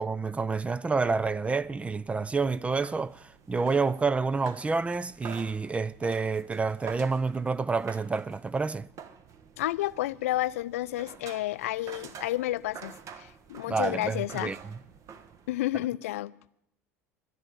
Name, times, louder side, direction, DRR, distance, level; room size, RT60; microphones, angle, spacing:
voice 1, 0.0-3.2 3.5-8.9 13.7-14.6, right 4 dB, 15° right, 0.5 m, -28 dB
sound 1, 0.9-15.8, right 7 dB, 40° right, 1.2 m, -48 dB
voice 2, 9.6-14.5 15.5-16.3, left 15 dB, 65° left, 0.5 m, -31 dB
14.0 x 11.0 x 8.1 m
figure-of-eight pair, 70°, 8 cm